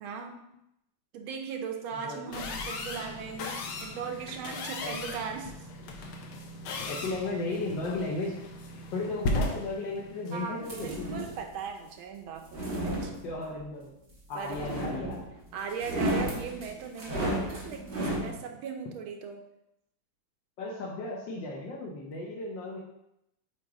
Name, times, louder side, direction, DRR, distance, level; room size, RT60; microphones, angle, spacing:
voice 1, 0.0-0.5 1.1-5.7 10.3-13.1 14.3-14.6 15.5-19.4, right 6 dB, 80° right, 4 dB, 1.6 m, -38 dB
voice 2, 1.9-2.3 4.8-5.0 6.8-8.4 8.9-11.1 13.2-13.9 14.3-15.2 20.6-22.8, left 2 dB, 65° left, -3 dB, 1.5 m, -35 dB
sound 1, 2.3-11.4, left 2 dB, 85° left, 1.6 m, -37 dB
sound 2, 10.7-11.4 12.3-13.6 14.5-15.4 15.7-18.3, right 1 dB, 30° right, 1.2 m, -33 dB
7.6 x 2.7 x 4.7 m, 0.82 s
omnidirectional pair, 2.3 m